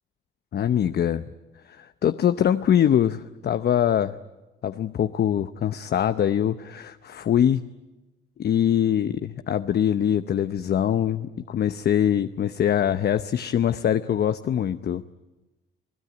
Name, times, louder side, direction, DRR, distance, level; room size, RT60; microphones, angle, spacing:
voice 1, 0.5-1.3 1.7-4.2 4.6-7.6 8.4-15.0, left 9 dB, 55° left, 11 dB, 0.8 m, -23 dB
28.0 x 18.0 x 9.5 m, 1.1 s
cardioid pair, 90°, 20 cm